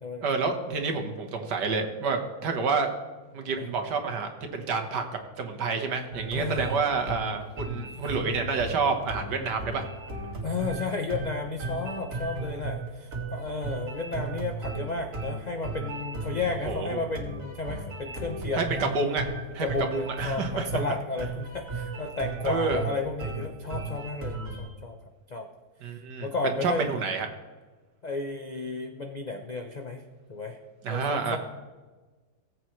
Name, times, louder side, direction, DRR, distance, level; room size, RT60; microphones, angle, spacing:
voice 1, 0.2-2.9 3.3-5.0 5.4-9.8 16.7-17.0 18.5-19.2 19.5-20.7 22.4-22.8 25.8-27.3 30.8-31.4, right 4 dB, 85° right, 4 dB, 1.8 m, -29 dB
sound 1, 6.1-24.7, right 2 dB, 50° right, 2.1 m, -35 dB
voice 2, 6.3-6.9 10.4-18.8 19.6-25.0 25.3-25.5 26.2-26.9 28.0-30.6 30.9-31.4, left 3 dB, 60° left, 4 dB, 0.4 m, -33 dB
18.5 x 8.0 x 3.1 m, 1.3 s
omnidirectional pair, 1.8 m